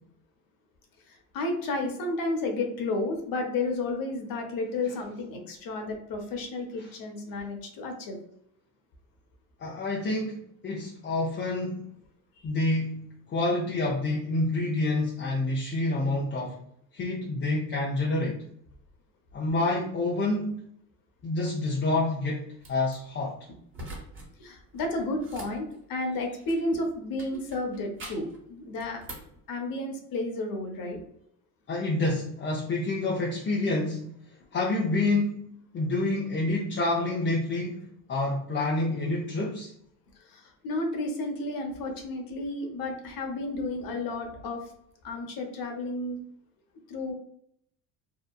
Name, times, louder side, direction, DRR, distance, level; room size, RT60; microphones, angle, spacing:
voice 1, 1.1-8.2 24.4-29.0 29.5-31.0 40.2-44.6 45.0-46.2 46.9-47.1, left 2 dB, 50° left, 3 dB, 0.8 m, -32 dB
voice 2, 9.6-11.8 12.4-16.6 16.9-18.4 19.3-20.7 21.2-23.4 31.7-34.1 34.5-39.7, left 2 dB, 25° left, -3 dB, 0.5 m, -28 dB
sound 1, 22.6-23.0 23.7-24.3 24.6-26.7 27.2-28.4 28.8-29.4, right 1 dB, 25° right, 1.2 m, -44 dB
2.8 x 2.1 x 2.3 m, 0.71 s
hypercardioid pair, 70°, 45 cm